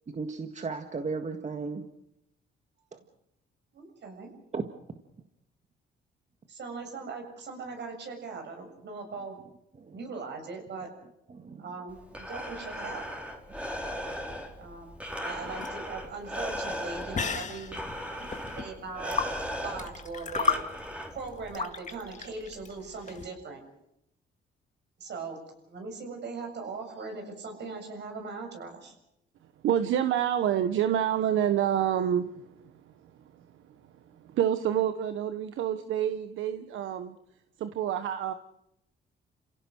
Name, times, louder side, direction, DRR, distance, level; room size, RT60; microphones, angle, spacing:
voice 1, 0.1-1.8 2.9-3.0 4.5-4.6 9.8-10.0 11.3-11.6 13.6-13.7 18.2-18.6, right 4 dB, 35° right, 6 dB, 1.8 m, -36 dB
voice 2, 3.7-4.3 6.5-9.4 9.9-10.9 11.6-13.0 14.6-14.9 15.2-17.8 18.6-19.2 19.6-20.6 21.1-23.6 25.0-25.4 25.7-28.9, right 4 dB, 60° right, 4 dB, 7.4 m, -40 dB
Breathing, 11.9-21.5, equal, 5° right, 4.1 m, -38 dB
sound 1, 15.3-23.3, left 5 dB, 40° left, 2.0 m, -34 dB
voice 3, 29.6-32.7 34.2-37.2 37.6-38.3, right 10 dB, 80° right, 9 dB, 1.2 m, -27 dB
29.5 x 17.0 x 6.4 m, 0.80 s
cardioid pair, 90°, 20 cm